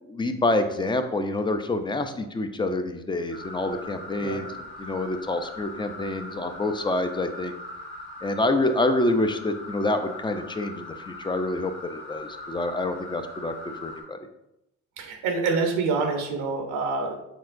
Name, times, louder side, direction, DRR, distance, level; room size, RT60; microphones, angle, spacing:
voice 1, 0.0-4.5 4.8-7.5 8.2-14.2, left 2 dB, 15° left, 7 dB, 0.3 m, -27 dB
sound 1, 3.3-14.0, left 2 dB, 40° left, 1.5 m, -41 dB
voice 2, 15.0-17.2, right 4 dB, 90° right, 3 dB, 0.7 m, -26 dB
4.4 x 3.7 x 2.5 m, 0.86 s
cardioid pair, 90°, 30 cm